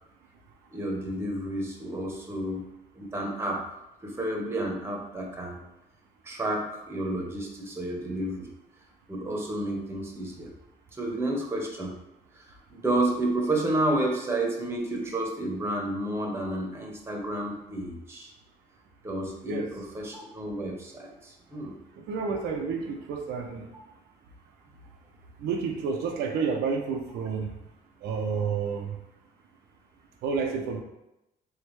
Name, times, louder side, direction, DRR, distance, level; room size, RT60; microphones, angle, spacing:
voice 1, 0.7-2.6 3.0-3.6 4.0-5.6 6.2-8.5 9.1-10.5 11.0-11.9 12.3-12.4 12.7-18.3 19.0-21.8, right 1 dB, 15° right, 0 dB, 0.9 m, -30 dB
voice 2, 22.0-23.6 25.4-27.5 28.0-28.9 30.2-30.8, right 5 dB, 75° right, 2 dB, 0.6 m, -30 dB
3.5 x 3.4 x 3.2 m, 0.89 s
cardioid pair, 110°, 17 cm